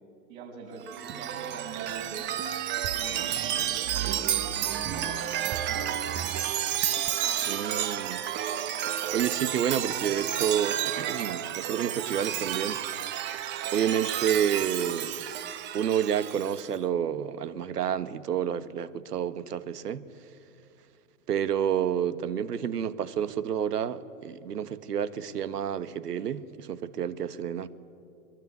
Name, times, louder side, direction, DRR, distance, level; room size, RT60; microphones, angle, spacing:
voice 1, 0.3-2.4 2.9-6.3, right 4 dB, 60° right, 7.2 m, -43 dB
Chime, 0.8-16.7, right 10 dB, 25° right, 1.0 m, -31 dB
voice 2, 7.4-8.2 9.1-12.8 13.7-15.2 15.7-20.0 21.3-27.7, right 9 dB, 80° right, 1.4 m, -29 dB
23.0 x 21.5 x 9.5 m
hypercardioid pair, 125°, 47 cm